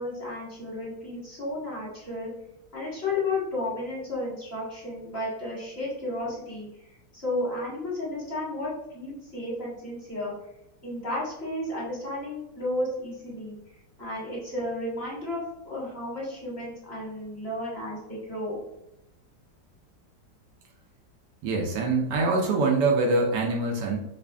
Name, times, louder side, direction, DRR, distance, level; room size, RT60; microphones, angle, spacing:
voice 1, 0.0-2.3 2.7-6.7 7.1-10.3 10.8-13.6 14.0-15.4 15.6-18.6, left 1 dB, 40° left, -6 dB, 1.3 m, -33 dB
voice 2, 21.4-24.0, right 3 dB, 75° right, 1 dB, 1.3 m, -24 dB
5.0 x 2.4 x 2.3 m, 0.83 s
omnidirectional pair, 1.9 m